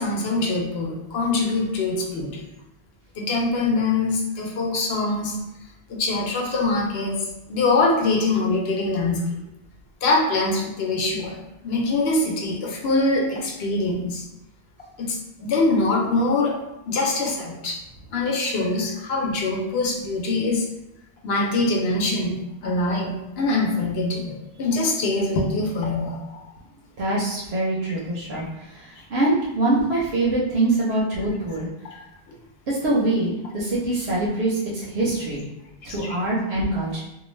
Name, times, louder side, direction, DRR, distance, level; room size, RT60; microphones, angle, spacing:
voice 1, 0.0-2.4 3.2-5.4 5.9-7.2 7.5-9.4 10.0-11.4 11.6-14.2 15.0-16.6 16.9-17.8 18.1-20.7 21.2-22.3 22.6-26.4 28.3-28.4 30.9-31.6 31.9-32.0 33.9-34.0 35.0-35.1 35.9-36.2, left 2 dB, 80° left, 0 dB, 0.8 m, -24 dB
voice 2, 27.0-31.7 32.7-35.4 35.8-37.0, right 2 dB, 90° right, -6 dB, 0.9 m, -24 dB
2.4 x 2.2 x 3.0 m, 0.92 s
omnidirectional pair, 1.0 m